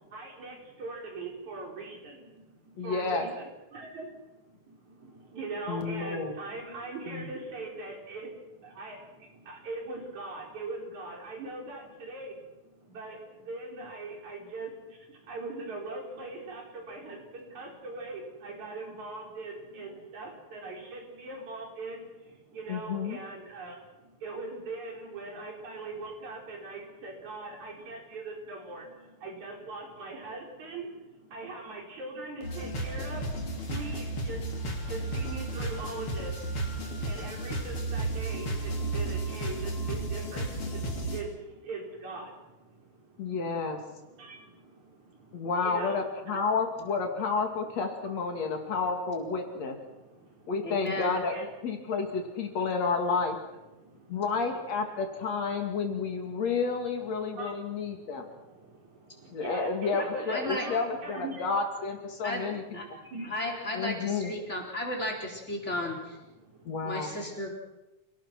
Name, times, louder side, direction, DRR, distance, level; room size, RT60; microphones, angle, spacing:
voice 1, 0.0-42.4 42.9-46.4 48.1-48.8 49.4-50.9 51.2-51.5 51.8-52.9 53.6-58.3 58.6-61.5 62.1-62.6 62.8-63.4 63.8-64.8 65.2-67.5, right 3 dB, 75° right, 0 dB, 5.9 m, -42 dB
voice 2, 2.8-3.2 5.7-6.3 7.1-7.2 22.7-23.2 43.2-43.8 45.3-49.8 50.5-53.4 54.1-58.2 59.3-63.0 63.7-64.3 66.6-67.1, left 4 dB, 65° left, 4 dB, 3.6 m, -30 dB
sound 1, 32.4-41.2, right 2 dB, 45° left, 4.1 m, -33 dB
voice 3, 50.6-51.2 60.0-60.7 62.2-62.5 62.7-62.9 63.3-66.2 66.8-67.5, left 1 dB, 20° left, 0 dB, 4.3 m, -34 dB
28.5 x 18.0 x 6.2 m, 1.0 s
omnidirectional pair, 3.3 m